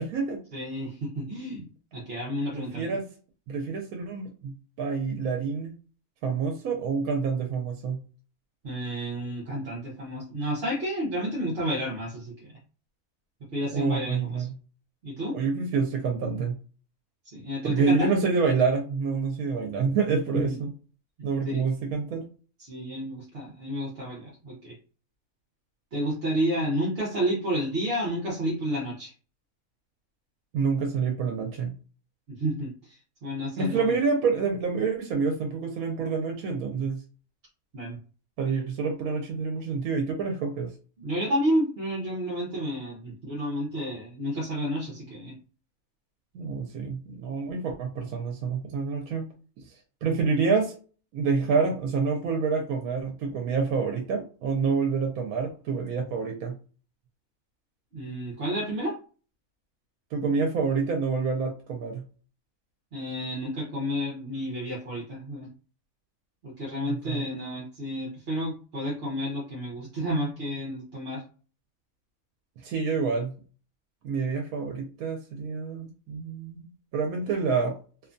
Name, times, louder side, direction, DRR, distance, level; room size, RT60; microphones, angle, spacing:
voice 1, 0.0-0.4 2.5-3.0 3.5-5.7 6.2-8.0 13.7-14.5 15.3-16.5 17.6-20.7 21.2-22.3 30.5-31.7 33.6-37.0 38.4-40.7 46.3-49.3 49.6-50.8 51.1-56.5 60.1-62.0 66.8-67.2 72.6-73.3 74.0-77.7, right 5 dB, 75° right, 2 dB, 1.0 m, -27 dB
voice 2, 0.5-2.9 8.6-12.5 13.5-14.5 15.0-15.4 17.2-18.1 20.3-20.5 21.2-21.3 21.5-21.7 22.6-24.8 25.9-29.1 32.3-33.0 33.2-33.9 37.7-38.0 41.0-45.4 57.9-59.0 62.9-65.5 66.4-71.2, equal, 50° right, -4 dB, 0.8 m, -31 dB
2.8 x 2.2 x 2.5 m, 0.38 s
omnidirectional pair, 1.6 m